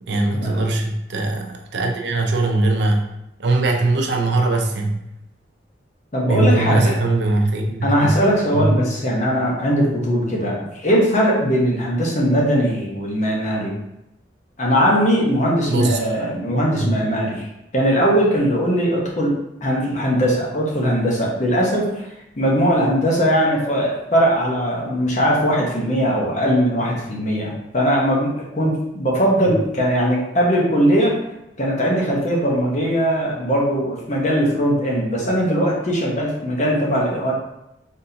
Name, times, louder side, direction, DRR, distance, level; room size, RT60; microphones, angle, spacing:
voice 1, 0.0-3.0 3.4-5.0 6.3-8.1 8.5-8.8 15.7-16.0 16.7-17.0 29.5-29.6, right 2 dB, 65° right, 2 dB, 0.6 m, -20 dB
voice 2, 6.1-7.0 7.8-13.7 14.6-17.5 17.7-22.1 22.4-31.2 31.6-37.3, equal, 40° left, -3 dB, 1.0 m, -20 dB
4.1 x 3.5 x 2.8 m, 0.87 s
head